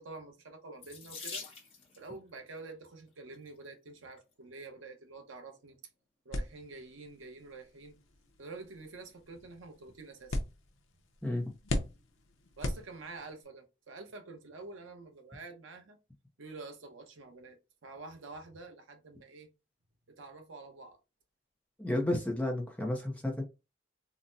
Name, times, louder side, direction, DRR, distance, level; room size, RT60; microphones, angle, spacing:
voice 1, 0.0-1.5 2.0-5.8 6.2-8.0 8.4-10.4 12.6-16.0 16.4-19.5 20.2-21.0, right 3 dB, 85° right, 0.8 m, -48 dB
Water tap faucet / Sink (filling or washing), 0.8-2.1 3.1-3.5 4.2-4.3 4.6-4.7, left 5 dB, 30° left, 0.8 m, -44 dB
sound 1, 6.3-13.4, left 1 dB, 85° left, 0.6 m, -40 dB
voice 2, 11.2-11.5 21.8-23.4, left 1 dB, 5° left, 0.5 m, -32 dB
3.9 x 2.1 x 2.6 m
head